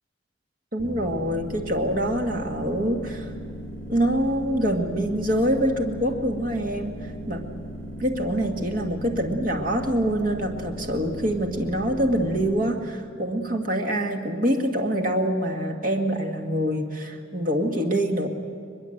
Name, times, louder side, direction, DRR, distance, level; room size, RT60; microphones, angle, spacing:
voice 1, 0.7-3.3 3.9-7.5 8.0-18.3, equal, 45° right, 3 dB, 1.9 m, -25 dB
sound 1, 0.8-12.5, equal, 15° left, 5.3 m, -37 dB
23.0 x 22.0 x 7.9 m, 2.4 s
head